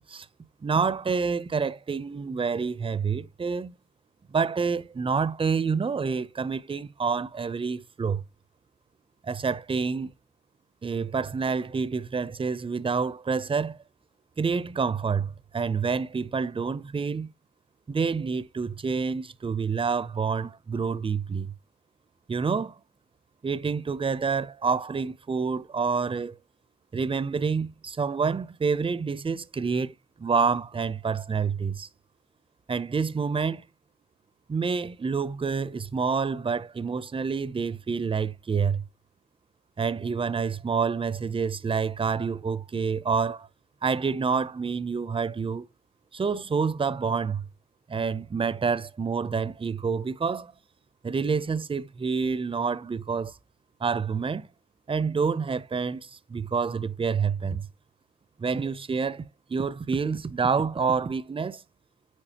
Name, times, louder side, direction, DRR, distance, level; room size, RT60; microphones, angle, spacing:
voice 1, 0.6-3.7 4.3-8.2 9.2-10.1 10.8-13.8 14.4-17.3 17.9-21.5 22.3-22.7 23.4-26.4 26.9-29.9 30.2-31.9 32.7-33.6 34.5-38.8 39.8-43.5 43.8-45.7 46.1-47.4 47.9-50.5 51.0-53.3 53.8-54.5 54.9-57.7 58.4-59.2 59.5-61.6, right 5 dB, 20° right, 0.5 m, -28 dB
9.0 x 4.3 x 2.9 m
cardioid pair, 90°, 30 cm